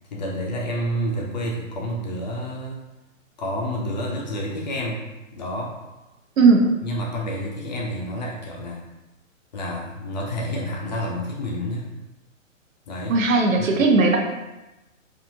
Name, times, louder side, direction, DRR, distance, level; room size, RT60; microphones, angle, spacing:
voice 1, 0.1-2.8 3.4-5.0 5.3-5.8 6.8-8.8 9.5-11.9 12.9-13.2 13.6-13.7, equal, 35° left, -2 dB, 0.4 m, -29 dB
voice 2, 6.4-6.7 13.1-14.2, right 3 dB, 75° right, 1 dB, 0.7 m, -17 dB
2.7 x 2.4 x 2.7 m, 1.0 s
hypercardioid pair, 135°, 40 cm